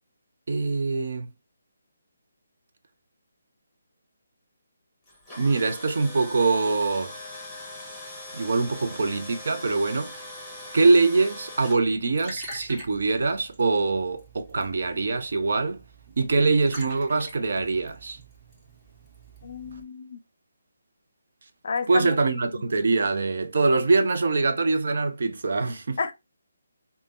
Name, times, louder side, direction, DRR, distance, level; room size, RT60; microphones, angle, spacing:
voice 1, 0.5-1.3 5.4-7.1 8.3-10.2 10.7-15.8 16.2-18.2 21.9-26.0, right 3 dB, 60° right, 0.6 m, -23 dB
Tools, 5.1-11.8, left 1 dB, ahead, 1.2 m, -41 dB
Liquid, 11.7-19.8, right 1 dB, 20° right, 1.2 m, -46 dB
voice 2, 19.4-20.2 21.6-22.2 22.5-22.6 26.0-26.1, left 5 dB, 55° left, 0.5 m, -31 dB
3.3 x 2.2 x 2.5 m
figure-of-eight pair, 150°, 0 cm